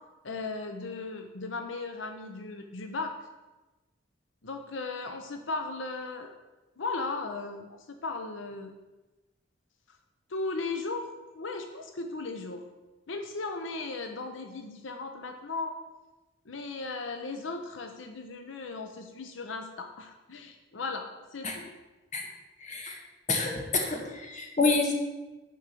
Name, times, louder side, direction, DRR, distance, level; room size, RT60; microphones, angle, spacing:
voice 1, 0.2-3.1 4.4-6.3 6.8-8.7 10.3-12.6 13.1-15.7 16.5-21.1 21.3-21.8, left 3 dB, 85° left, 5 dB, 0.8 m, -36 dB
voice 2, 22.6-23.0 23.3-25.0, left 3 dB, 40° left, 2 dB, 1.6 m, -28 dB
10.0 x 5.1 x 6.7 m, 1.1 s
head